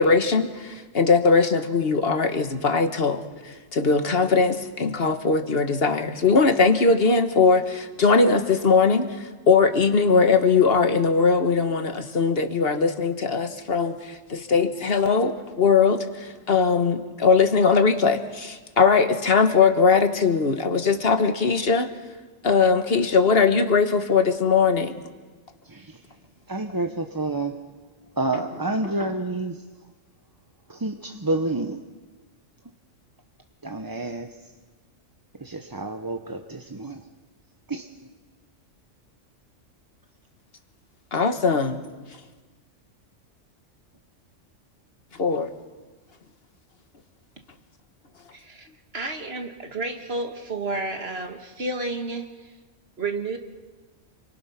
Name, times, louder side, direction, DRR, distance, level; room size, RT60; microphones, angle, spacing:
voice 1, 0.0-21.9 22.4-25.0 28.3-29.1 41.1-41.8 45.2-45.5, left 5 dB, 50° left, 8 dB, 1.5 m, -20 dB
voice 2, 26.5-27.6 28.2-29.6 30.7-31.8 33.6-34.3 35.4-37.0 37.7-37.9, right 2 dB, 20° right, 5 dB, 0.8 m, -29 dB
voice 3, 48.3-48.7 48.9-52.3 53.0-53.4, right 3 dB, 55° right, 4 dB, 2.2 m, -31 dB
28.5 x 24.0 x 5.8 m, 1.3 s
omnidirectional pair, 1.3 m